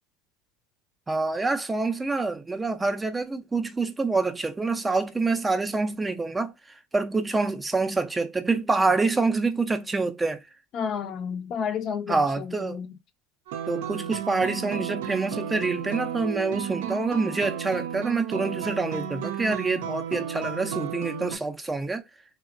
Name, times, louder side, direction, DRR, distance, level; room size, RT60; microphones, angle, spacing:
voice 1, 1.1-6.5 6.9-10.4 12.1-12.8 13.7-22.0, right 3 dB, 15° right, 0.4 m, -26 dB
voice 2, 10.7-12.9, left 7 dB, 45° left, 0.4 m, -31 dB
sound 1, 13.5-21.4, right 9 dB, 70° right, 0.5 m, -33 dB
2.8 x 2.1 x 2.3 m
hypercardioid pair, 85°, 0 cm